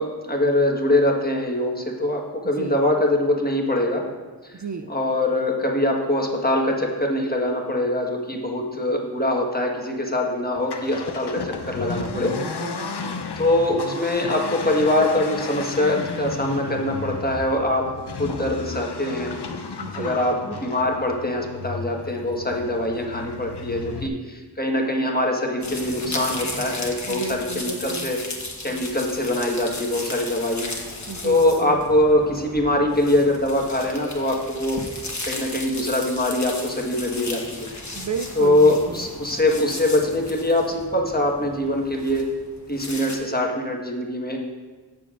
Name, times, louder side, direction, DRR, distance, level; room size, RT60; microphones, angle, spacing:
voice 1, 0.0-4.0 4.9-12.4 13.4-17.9 18.2-19.3 19.9-28.2 28.6-30.7 31.2-34.8 35.3-37.7 38.4-42.3 42.7-44.4, left 1 dB, 25° left, 0 dB, 1.4 m, -23 dB
voice 2, 4.5-4.9 12.0-13.2 19.8-20.2 27.1-28.1 31.1-31.8 37.9-39.1, right 4 dB, 45° right, 7 dB, 0.4 m, -33 dB
Accelerating revving vroom, 10.5-24.1, left 4 dB, 75° left, 0.7 m, -34 dB
sound 1, 25.6-43.2, left 2 dB, 45° left, 1.2 m, -35 dB
15.5 x 7.0 x 2.5 m, 1.4 s
wide cardioid pair, 50°, 40 cm